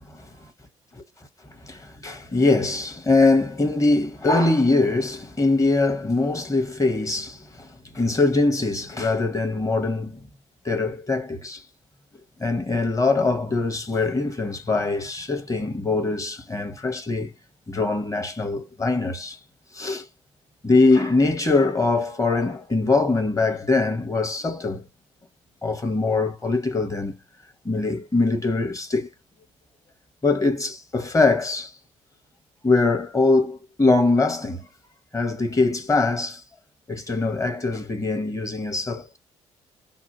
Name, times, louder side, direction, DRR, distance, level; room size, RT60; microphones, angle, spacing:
voice 1, 1.6-7.7 7.9-10.2 10.6-11.6 12.4-17.3 17.7-19.4 19.7-20.1 20.6-24.8 25.6-27.2 27.6-29.1 30.2-31.7 32.6-34.6 35.1-36.4 36.9-39.2, left 3 dB, 20° left, 1.0 m, -22 dB
2.7 x 2.1 x 2.8 m
figure-of-eight pair, 45°, 16 cm